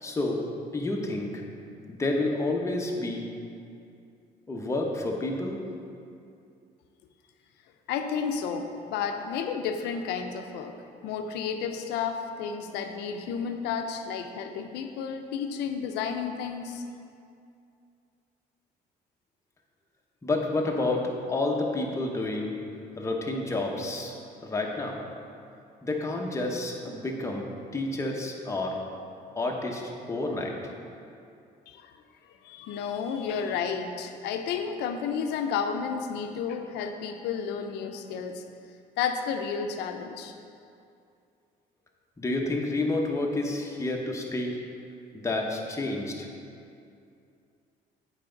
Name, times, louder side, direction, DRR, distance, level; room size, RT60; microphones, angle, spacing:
voice 1, 0.0-0.4 0.7-1.3 1.9-3.2 4.5-5.6 20.2-22.6 23.0-24.1 24.4-25.0 25.8-27.4 27.7-28.8 29.4-29.8 30.1-30.5 42.2-44.5 45.1-46.3, left 2 dB, 15° left, 0 dB, 0.9 m, -29 dB
voice 2, 7.9-10.8 11.0-16.8 31.7-31.9 32.4-38.4 39.0-40.3, left 6 dB, 85° left, 6 dB, 0.6 m, -32 dB
8.3 x 4.8 x 3.9 m, 2.5 s
cardioid pair, 110°, 17 cm